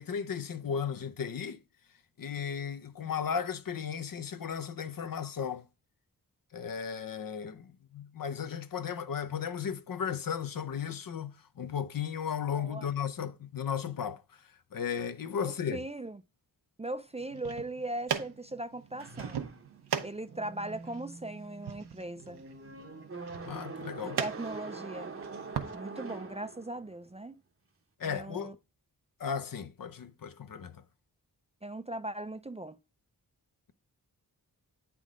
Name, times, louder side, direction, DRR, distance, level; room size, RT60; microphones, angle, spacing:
voice 1, 0.0-1.6 2.2-5.6 6.5-14.2 14.7-15.8 23.4-24.2 28.0-28.5 29.2-30.7, left 7 dB, 60° left, 0.6 m, -35 dB
voice 2, 12.6-12.9 15.4-16.2 16.8-19.5 20.0-22.4 24.0-25.1 25.7-27.4 28.0-28.6 31.6-32.8, right 2 dB, 15° right, 0.4 m, -39 dB
sound 1, 17.2-25.7, right 7 dB, 80° right, 0.8 m, -40 dB
sound 2, 19.0-27.0, right 4 dB, 35° right, 0.8 m, -44 dB
8.2 x 3.6 x 3.7 m
wide cardioid pair, 60°, 39 cm